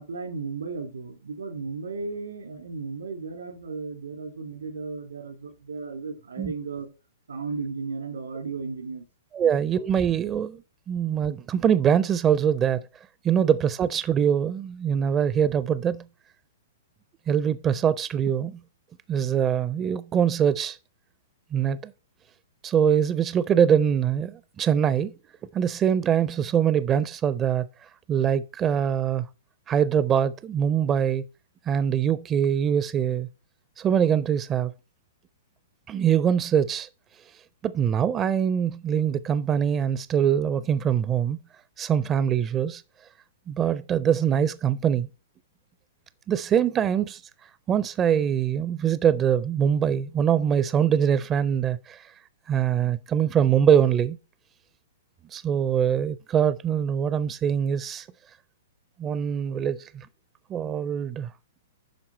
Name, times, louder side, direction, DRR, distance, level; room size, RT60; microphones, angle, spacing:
voice 1, 0.0-6.9 7.3-9.1, right 4 dB, 90° right, 3.3 m, -35 dB
voice 2, 9.3-10.6 10.9-12.9 13.2-16.0 17.3-18.5 19.1-20.8 21.5-21.9 22.6-25.1 25.5-27.7 28.1-29.3 29.7-31.2 31.7-33.3 33.8-34.7 35.9-36.9 37.6-41.4 41.8-42.8 43.5-45.1 46.3-47.2 47.7-52.1 52.5-54.2 55.3-58.1 59.0-60.1 60.5-61.3, right 8 dB, 25° right, 0.4 m, -23 dB
9.2 x 5.7 x 4.2 m
hypercardioid pair, 125°, 0 cm